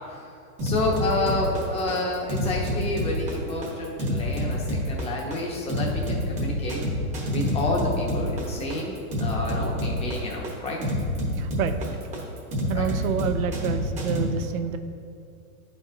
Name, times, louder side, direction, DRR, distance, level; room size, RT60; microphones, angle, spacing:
voice 1, 0.6-6.8 7.3-10.8 12.7-12.8, left 2 dB, 15° left, -2 dB, 0.8 m, -29 dB
sound 1, 0.6-14.2, equal, 15° right, 0.9 m, -28 dB
voice 2, 11.4-12.0 12.7-14.8, right 7 dB, 65° right, 8 dB, 0.6 m, -28 dB
10.0 x 4.4 x 2.6 m, 2.5 s
hypercardioid pair, 140°, 45 cm